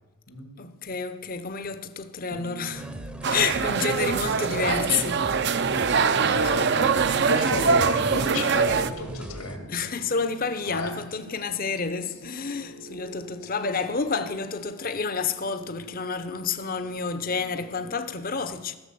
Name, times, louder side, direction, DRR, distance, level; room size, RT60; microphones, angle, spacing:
voice 1, 0.6-2.9 3.3-5.3 9.7-18.8, left 5 dB, 40° left, 0.7 m, -29 dB
sound 1, 2.3-18.0, right 2 dB, 75° right, 2.6 m, -46 dB
sound 2, 2.7-9.6, equal, 5° right, 0.7 m, -39 dB
sound 3, 3.2-8.9, right 5 dB, 50° right, 0.5 m, -23 dB
voice 2, 6.3-9.7 10.7-10.9, left 2 dB, 80° left, 2.1 m, -32 dB
15.0 x 7.1 x 6.8 m
head